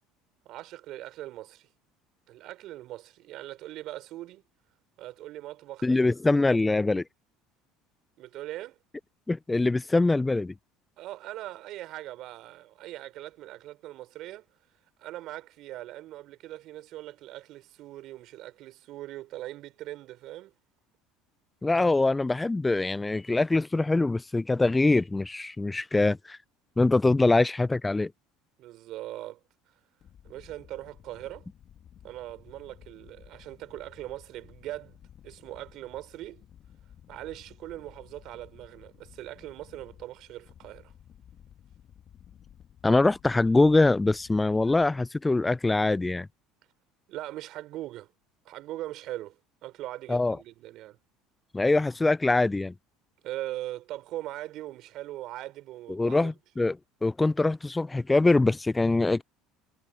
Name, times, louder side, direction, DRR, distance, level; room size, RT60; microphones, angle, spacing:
voice 1, 0.5-1.7 2.3-4.4 5.0-6.1 8.2-8.8 11.0-14.4 15.0-20.5 28.6-29.4 30.2-31.5 32.0-35.0 35.2-36.4 37.1-40.9 47.1-48.1 48.4-51.0 53.2-56.3, right 15 dB, 60° right, 4.0 m, -40 dB
voice 2, 5.8-7.0 9.3-10.5 21.6-26.4 26.8-28.1 42.8-46.3 50.1-50.4 51.5-52.7 55.9-56.8 57.0-59.2, left 2 dB, 15° left, 0.4 m, -23 dB
sound 1, 30.0-45.1, left 9 dB, 45° left, 2.5 m, -54 dB
hypercardioid pair, 80°, 0 cm